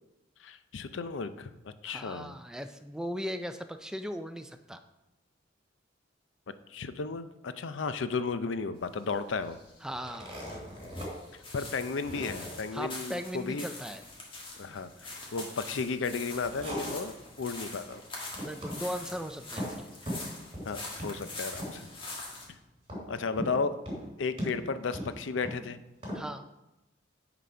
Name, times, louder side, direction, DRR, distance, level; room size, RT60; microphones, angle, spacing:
voice 1, 0.4-2.4 6.7-9.6 11.5-13.6 14.6-18.0 20.6-21.8 23.1-23.8 24.2-25.8, left 4 dB, 75° left, 12 dB, 0.5 m, -34 dB
voice 2, 1.9-4.8 9.8-10.4 12.7-14.0 18.4-19.8 26.1-26.4, equal, 5° right, 8 dB, 0.4 m, -38 dB
sound 1, 8.8-22.5, left 2 dB, 25° left, 1.7 m, -44 dB
sound 2, 9.9-11.1 11.5-11.6 12.0-12.5 16.1-17.4 17.7-18.0 18.3-18.8 19.1-19.8 20.1-20.7 21.0-21.2 21.5-22.0 22.9-23.6 23.9-24.0 24.4-25.6 26.0-26.2, equal, 30° right, 3.0 m, -38 dB
9.3 x 4.0 x 5.6 m, 0.95 s
head